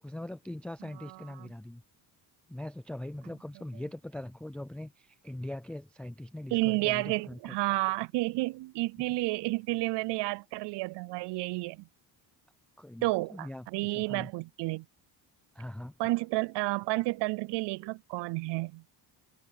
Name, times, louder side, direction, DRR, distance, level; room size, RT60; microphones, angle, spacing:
voice 1, 0.0-1.8 2.5-7.6 12.8-14.3 15.5-15.9, left 1 dB, 5° left, 0.4 m, -41 dB
voice 2, 1.1-1.5 6.5-11.8 13.0-14.8 16.0-18.8, right 21 dB, 80° right, 0.5 m, -31 dB
cardioid pair, 150°, 41 cm